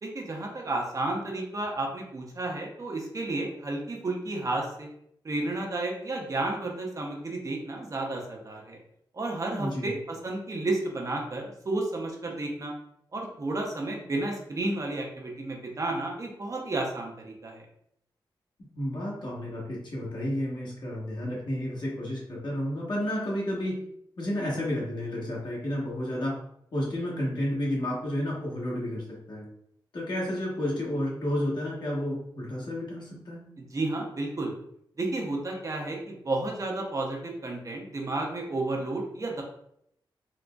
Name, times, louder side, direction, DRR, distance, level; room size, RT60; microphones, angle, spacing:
voice 1, 0.0-4.9 5.2-8.8 9.1-12.7 13.1-17.7 33.6-34.5 35.0-39.4, right 2 dB, 40° right, 0 dB, 0.6 m, -32 dB
voice 2, 9.5-9.9 18.6-23.8 24.2-26.4 26.7-29.5 29.9-33.5, left 1 dB, 60° left, -4 dB, 1.1 m, -31 dB
3.8 x 2.1 x 2.3 m, 0.72 s
wide cardioid pair, 90°, 9 cm